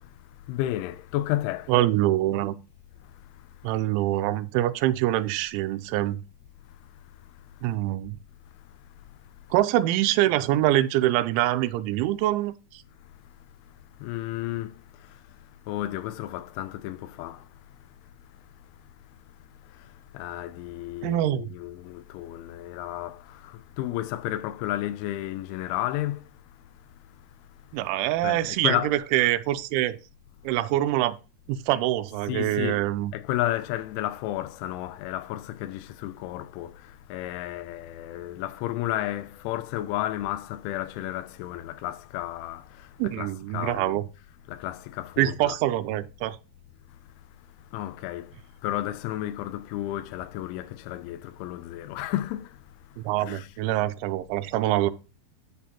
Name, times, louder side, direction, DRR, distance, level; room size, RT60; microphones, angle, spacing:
voice 1, 0.5-1.7 14.0-14.7 15.7-17.4 20.1-23.2 23.8-26.2 28.2-28.9 32.3-32.8 33.1-36.7 37.1-42.6 43.2-44.0 44.5-45.6 47.7-48.3 48.6-52.4 53.3-53.5, left 14 dB, 85° left, 3.0 m, -32 dB
voice 2, 1.7-2.5 3.6-6.2 7.6-8.2 9.5-12.5 21.0-21.5 27.7-28.8 29.1-30.0 30.5-31.2 31.5-33.1 43.0-44.0 45.2-46.4 53.0-54.9, right 14 dB, 85° right, 3.0 m, -24 dB
8.5 x 7.2 x 2.8 m
omnidirectional pair, 5.4 m